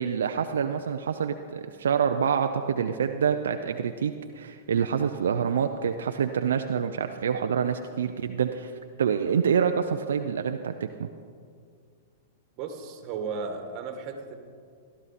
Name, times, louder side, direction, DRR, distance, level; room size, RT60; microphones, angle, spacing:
voice 1, 0.0-8.7 9.0-10.7 11.0-11.1, right 7 dB, 80° right, 6 dB, 0.6 m, -26 dB
voice 2, 12.6-14.3, right 5 dB, 40° right, 6 dB, 1.8 m, -35 dB
15.5 x 12.5 x 4.2 m, 2.2 s
hypercardioid pair, 125°, 0 cm